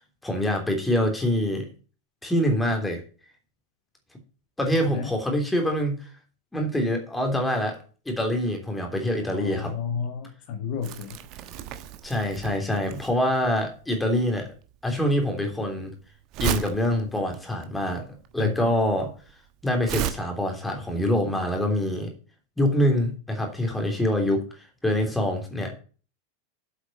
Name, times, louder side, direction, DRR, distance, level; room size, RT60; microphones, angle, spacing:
voice 1, 0.2-1.7 2.2-3.0 4.6-6.1 6.5-7.8 8.0-9.7 12.0-14.5 14.8-15.9 16.4-18.0 18.3-19.1 19.6-22.1 22.6-25.8, left 1 dB, 5° left, 3 dB, 3.3 m, -25 dB
voice 2, 9.3-11.2 18.4-18.8, left 6 dB, 45° left, 4 dB, 1.9 m, -32 dB
Crumpling crinkling, 10.8-20.1, right 11 dB, 40° right, 1.2 m, -34 dB
8.3 x 8.0 x 5.6 m, 0.37 s
figure-of-eight pair, 90°, 0 cm